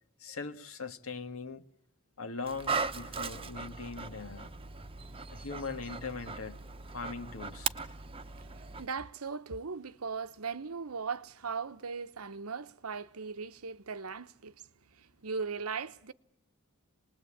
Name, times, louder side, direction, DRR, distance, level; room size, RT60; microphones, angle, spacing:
voice 1, 0.2-1.7 2.2-4.5 5.3-6.6 6.9-7.7, left 4 dB, 70° left, 1.7 m, -40 dB
Dog, 2.4-8.9, right 5 dB, 25° right, 1.0 m, -38 dB
voice 2, 8.4-14.6 14.9-16.1, right 5 dB, 75° right, 0.9 m, -38 dB
26.5 x 20.5 x 8.6 m
head